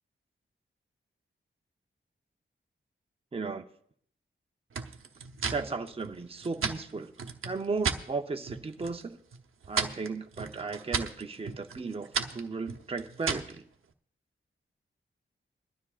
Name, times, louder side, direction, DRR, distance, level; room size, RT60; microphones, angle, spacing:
voice 1, 3.3-3.7 5.5-7.1 7.4-9.2 9.7-13.6, right 4 dB, 30° right, 5 dB, 0.7 m, -35 dB
sound 1, 4.7-8.0 8.4-9.0 9.3-13.6, right 5 dB, 80° right, 0.8 m, -35 dB
21.5 x 12.5 x 2.4 m, 0.64 s
wide cardioid pair, 120°, 21 cm